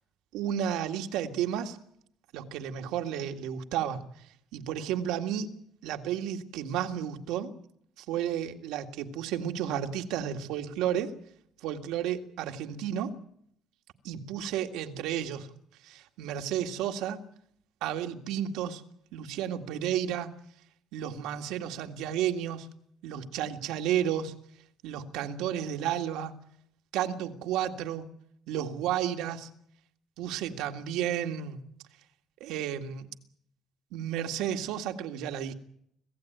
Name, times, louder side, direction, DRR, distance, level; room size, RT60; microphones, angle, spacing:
voice 1, 0.3-1.8 2.3-4.0 4.5-5.6 5.8-7.5 8.0-11.1 11.6-13.2 14.0-15.5 15.8-17.2 17.8-18.8 19.1-20.3 20.9-22.7 23.0-24.3 24.8-26.3 26.9-28.1 28.5-29.5 30.2-31.6 32.4-33.1 33.9-35.5, right 10 dB, 85° right, 5 dB, 2.0 m, -32 dB
25.5 x 16.5 x 9.3 m, 0.72 s
cardioid pair, 135°, 0 cm